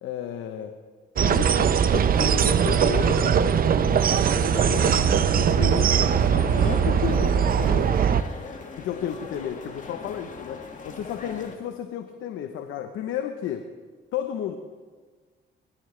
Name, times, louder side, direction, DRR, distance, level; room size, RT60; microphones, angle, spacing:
voice 1, 0.0-0.7 1.2-5.0 5.4-6.1 6.3-8.0 8.8-13.6 14.1-14.6, left 9 dB, 85° left, 6 dB, 0.9 m, -33 dB
sound 1, 1.2-8.2, right 7 dB, 45° right, 0.6 m, -21 dB
sound 2, 2.2-6.5, equal, 20° left, 5.7 m, -45 dB
sound 3, 4.5-11.6, left 3 dB, 40° left, 1.9 m, -40 dB
22.5 x 13.5 x 3.3 m, 1.4 s
cardioid pair, 90°, 20 cm